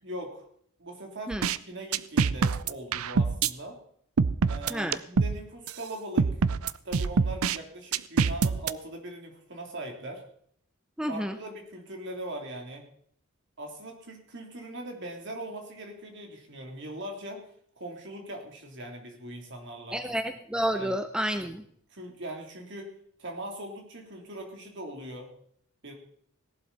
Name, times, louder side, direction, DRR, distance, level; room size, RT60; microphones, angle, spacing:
voice 1, 0.0-0.4 0.8-3.8 4.4-6.3 6.8-10.2 11.1-12.8 13.6-17.4 17.8-20.0 20.7-21.0 21.9-22.9 23.2-25.3 25.8-25.9, right 1 dB, 55° right, 2 dB, 3.2 m, -40 dB
sound 1, 1.3-1.6 1.9-3.5 4.2-5.4 5.7-5.8 6.2-7.6 7.9-8.7, right 5 dB, 80° right, 0.6 m, -25 dB
voice 2, 11.0-11.4 19.9-21.6, equal, 5° right, 8 dB, 0.6 m, -30 dB
17.5 x 11.5 x 4.1 m, 0.64 s
head